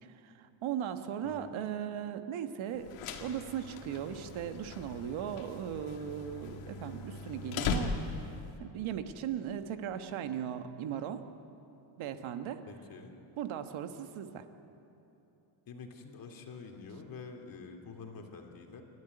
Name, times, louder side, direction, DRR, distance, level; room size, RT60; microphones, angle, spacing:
voice 1, 0.0-2.9 3.2-8.3 8.6-11.2 12.0-12.6 13.4-14.5, right 9 dB, 70° right, 8 dB, 1.5 m, -38 dB
voice 2, 1.2-1.6 12.7-13.2 15.7-18.8, left 4 dB, 40° left, 3 dB, 2.5 m, -47 dB
sound 1, 2.7-8.5, left 5 dB, 80° left, 2.0 m, -39 dB
29.0 x 12.5 x 10.0 m, 3.0 s
cardioid pair, 165°, 50 cm